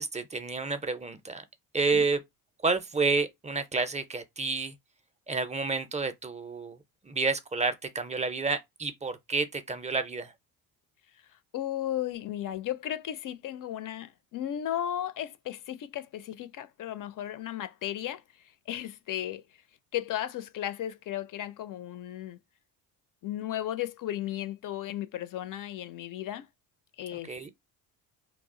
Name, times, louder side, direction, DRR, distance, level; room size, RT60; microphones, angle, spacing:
voice 1, 0.0-1.4 1.7-2.2 2.6-4.8 5.3-10.3 27.1-27.5, right 4 dB, 15° right, 0.5 m, -30 dB
voice 2, 11.1-19.4 19.9-22.4 23.2-26.5 27.0-27.3, left 12 dB, 45° left, 0.4 m, -35 dB
2.4 x 2.0 x 3.6 m
supercardioid pair, 65°, 47 cm